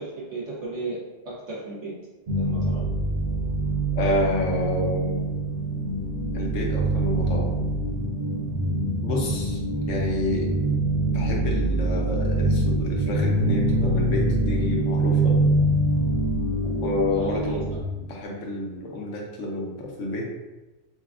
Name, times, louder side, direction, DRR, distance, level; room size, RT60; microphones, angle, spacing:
voice 1, 0.0-2.0 2.3-2.8 17.1-17.8, right 2 dB, 70° right, -7 dB, 1.1 m, -35 dB
sound 1, 2.3-17.8, right 2 dB, 50° right, 0.7 m, -24 dB
voice 2, 3.9-5.3 6.3-7.7 9.0-9.6 9.9-10.5 11.1-15.4 16.6-17.6 18.0-20.2, left 2 dB, 85° left, -2 dB, 1.1 m, -29 dB
5.6 x 2.2 x 2.5 m, 1.1 s
omnidirectional pair, 1.3 m